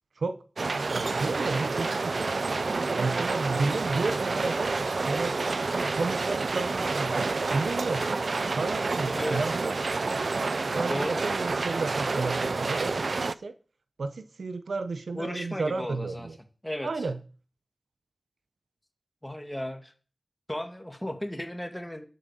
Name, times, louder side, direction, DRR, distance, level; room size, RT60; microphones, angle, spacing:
sound 1, 0.6-13.4, right 3 dB, 60° right, 0.6 m, -29 dB
voice 1, 0.8-2.3 2.9-4.7 5.0-5.4 5.9-8.1 8.5-9.7 10.8-13.6 14.0-16.4 16.8-17.2, right 3 dB, 80° right, 1.1 m, -32 dB
voice 2, 9.1-9.6 10.9-11.2 15.1-16.3 16.6-17.1 19.2-19.9 20.5-22.0, left 1 dB, 10° left, 2.3 m, -35 dB
11.5 x 7.9 x 7.0 m
wide cardioid pair, 95°, 0 cm